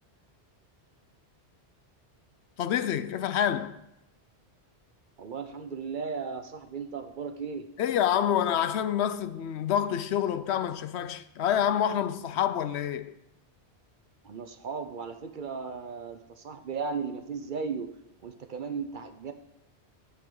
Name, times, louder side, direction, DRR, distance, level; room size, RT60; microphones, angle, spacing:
voice 1, 2.6-3.8 7.8-13.1, left 9 dB, 75° left, 0.9 m, -27 dB
voice 2, 5.2-7.7 14.2-17.9 18.2-19.3, right 5 dB, 50° right, 0.8 m, -36 dB
12.0 x 8.3 x 3.8 m
omnidirectional pair, 1.1 m